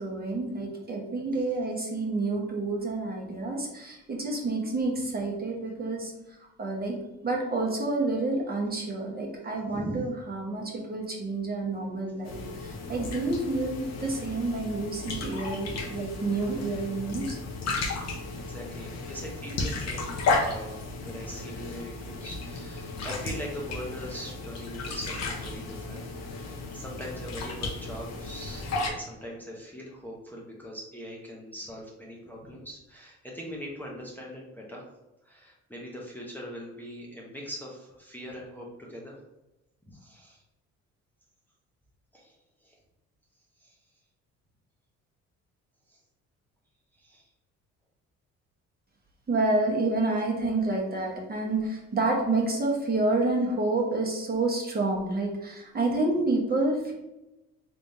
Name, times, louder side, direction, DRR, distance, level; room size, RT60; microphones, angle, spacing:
voice 1, 0.0-6.1 6.6-7.0 7.2-17.4 49.3-56.9, right 2 dB, 30° right, -2 dB, 1.1 m, -29 dB
sound 1, 12.2-28.9, left 3 dB, 55° left, 1.0 m, -34 dB
voice 2, 17.9-26.0 26.3-34.9 35.2-39.2 39.8-40.4 42.1-42.8 43.6-43.8 45.9-46.0 46.9-47.3, equal, 5° left, -3 dB, 0.9 m, -41 dB
3.5 x 3.3 x 2.7 m, 0.96 s
supercardioid pair, 75°, 31 cm